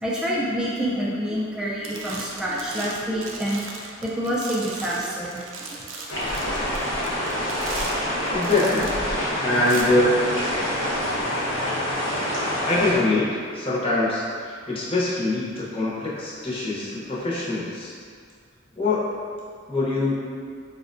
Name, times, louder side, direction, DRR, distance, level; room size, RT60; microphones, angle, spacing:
voice 1, 0.0-3.6 4.0-5.4, equal, 5° right, -7 dB, 0.4 m, -27 dB
sound 1, 1.3-1.6 1.8-9.1 9.6-9.8, right 3 dB, 70° right, 0.4 m, -38 dB
sound 2, 6.1-12.9, equal, 75° left, 0.8 m, -26 dB
voice 2, 8.3-9.1 9.4-10.3 12.5-13.3 13.5-17.9 18.8-19.0 19.7-20.3, left 2 dB, 30° left, -8 dB, 0.7 m, -24 dB
4.5 x 2.1 x 2.5 m, 2.1 s
head